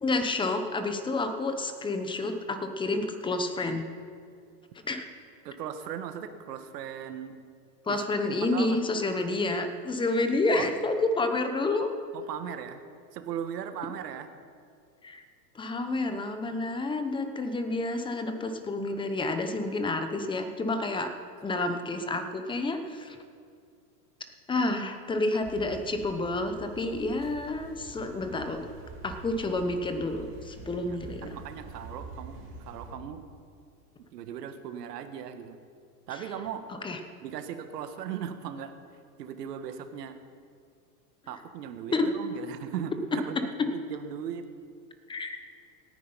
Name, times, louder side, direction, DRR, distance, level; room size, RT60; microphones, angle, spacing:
voice 1, 0.0-3.8 4.9-5.1 7.9-11.9 15.0-15.2 15.5-21.1 21.4-23.2 24.5-28.7 29.0-31.3 36.7-37.0 41.9-42.1 43.1-43.7 45.1-45.4, left 2 dB, 10° left, 7 dB, 0.9 m, -29 dB
voice 2, 5.4-7.4 7.9-8.0 8.4-8.8 10.5-10.7 12.1-12.8 13.1-14.3 30.7-32.4 32.6-33.2 34.1-35.6 36.1-36.6 37.2-38.7 39.2-40.2 41.3-44.5, right 9 dB, 80° right, 8 dB, 1.5 m, -38 dB
sound 1, 25.4-32.9, right 3 dB, 25° right, 2.4 m, -46 dB
17.5 x 9.8 x 5.6 m, 2.2 s
supercardioid pair, 140°, 48 cm